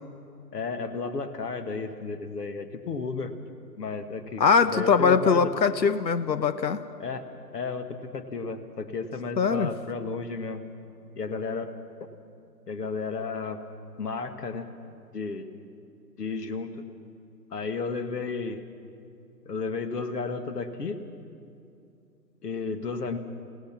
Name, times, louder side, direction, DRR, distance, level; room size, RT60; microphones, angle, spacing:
voice 1, 0.5-3.3 3.8-5.5 7.0-7.2 7.5-10.6 11.2-11.7 12.7-13.6 14.0-14.7 15.1-15.4 16.2-16.8 17.5-18.6 19.5-21.0 22.4-23.2, left 4 dB, 70° left, 9 dB, 2.0 m, -33 dB
voice 2, 4.4-6.8 9.4-9.7, left 5 dB, 90° left, 12 dB, 1.1 m, -22 dB
29.5 x 17.5 x 6.0 m, 2.6 s
hypercardioid pair, 150°, 50 cm